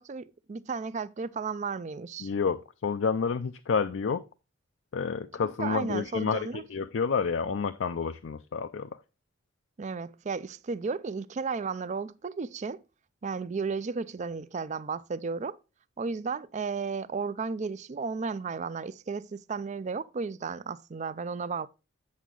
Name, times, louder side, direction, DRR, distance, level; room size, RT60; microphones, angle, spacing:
voice 1, 0.0-2.3 5.6-6.6 9.8-12.8 13.2-15.6 16.0-21.7, right 5 dB, 35° right, 0.4 m, -34 dB
voice 2, 2.2-4.2 4.9-8.9, left 5 dB, 60° left, 0.4 m, -29 dB
8.2 x 6.4 x 3.7 m
head